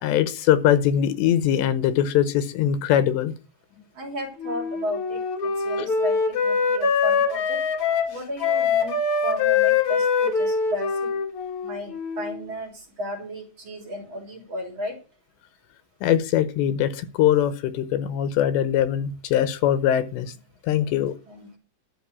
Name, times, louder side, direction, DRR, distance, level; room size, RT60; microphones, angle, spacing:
voice 1, 0.0-3.3 5.8-5.9 16.0-20.3 20.6-21.1, left 10 dB, 80° left, 13 dB, 3.0 m, -22 dB
voice 2, 4.0-7.6 8.1-9.0 9.2-11.2 11.6-15.0 20.8-21.6, equal, 30° right, 1 dB, 3.9 m, -34 dB
Wind instrument woodwind instrument, 4.4-12.4, left 5 dB, 50° left, 1.8 m, -23 dB
12.5 x 5.5 x 8.3 m, 0.33 s
omnidirectional pair, 5.1 m